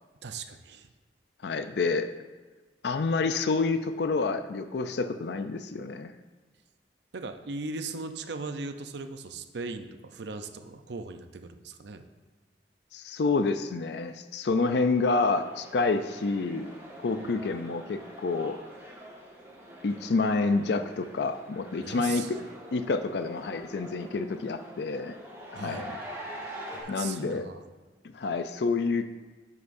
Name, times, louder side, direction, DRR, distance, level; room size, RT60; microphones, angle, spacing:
voice 1, 0.2-0.9 7.1-12.0 17.2-17.3 21.8-22.5 25.5-25.9 26.7-27.6, right 3 dB, 70° right, 8 dB, 0.6 m, -38 dB
voice 2, 1.4-2.1 2.8-6.1 12.9-16.7 17.0-18.6 19.8-22.4 22.7-25.2 25.5-26.0 26.9-27.4 28.1-29.1, left 3 dB, 65° left, 9 dB, 0.4 m, -28 dB
sound 1, 14.6-26.8, equal, 15° right, 1.6 m, -45 dB
11.0 x 8.0 x 2.6 m, 1.3 s
head